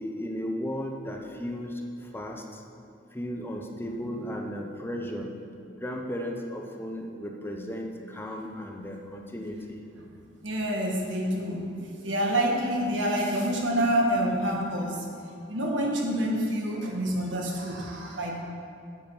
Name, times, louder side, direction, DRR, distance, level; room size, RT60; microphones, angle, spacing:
voice 1, 0.0-2.6 3.1-5.3 5.7-9.8, equal, 10° left, 2 dB, 0.7 m, -35 dB
voice 2, 10.4-15.0 15.5-18.4, right 1 dB, 70° right, 0 dB, 1.6 m, -27 dB
8.9 x 7.9 x 5.5 m, 2.4 s
head